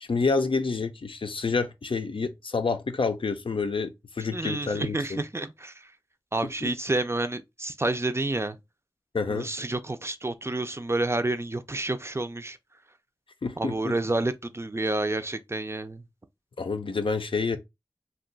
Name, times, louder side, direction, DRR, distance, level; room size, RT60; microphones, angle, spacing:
voice 1, 0.0-5.2 6.6-6.7 9.1-9.5 13.4-14.0 16.6-17.6, left 4 dB, 90° left, 0.4 m, -28 dB
voice 2, 4.3-5.7 6.3-8.6 9.3-12.6 13.6-16.0, right 2 dB, 30° right, 0.4 m, -29 dB
2.5 x 2.3 x 3.7 m
wide cardioid pair, 45°, 9 cm